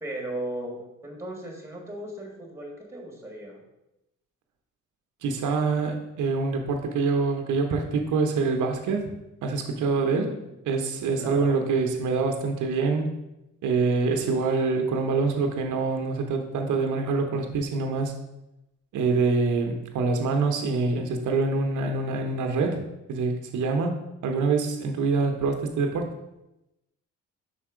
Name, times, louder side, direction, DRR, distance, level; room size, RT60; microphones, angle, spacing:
voice 1, 0.0-3.6 10.3-10.6 11.2-11.6, right 1 dB, 10° right, 1 dB, 1.8 m, -37 dB
voice 2, 5.2-9.1 9.4-10.3 10.7-13.2 13.6-18.1 18.9-22.8 23.1-24.0 24.2-26.1, right 4 dB, 75° right, 4 dB, 0.8 m, -25 dB
5.4 x 4.4 x 4.9 m, 0.92 s
cardioid pair, 90°, 30 cm